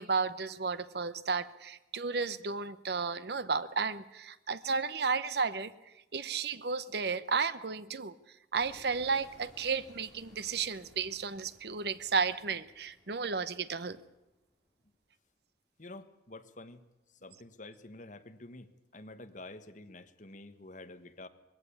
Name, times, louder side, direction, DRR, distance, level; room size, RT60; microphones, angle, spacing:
voice 1, 0.0-5.7 6.1-8.1 8.5-14.0, right 5 dB, 60° right, 15 dB, 0.8 m, -33 dB
sound 1, 8.5-14.8, left 1 dB, 5° left, 4.9 m, -61 dB
voice 2, 15.8-16.8 17.1-21.3, left 2 dB, 45° left, 9 dB, 1.3 m, -49 dB
21.0 x 16.0 x 8.5 m, 1.0 s
head